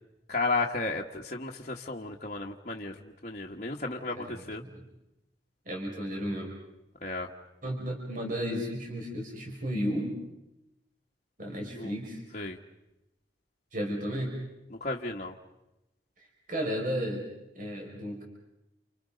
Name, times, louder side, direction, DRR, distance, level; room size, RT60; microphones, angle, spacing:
voice 1, 0.3-4.6 7.0-7.3 11.7-11.9 12.3-12.6 14.7-15.4, left 3 dB, 40° left, -2 dB, 1.4 m, -33 dB
voice 2, 5.7-6.5 7.6-10.2 11.4-12.2 13.7-14.3 16.5-17.2 17.6-18.2, equal, 45° right, -1 dB, 6.0 m, -33 dB
29.5 x 29.0 x 5.2 m, 0.91 s
head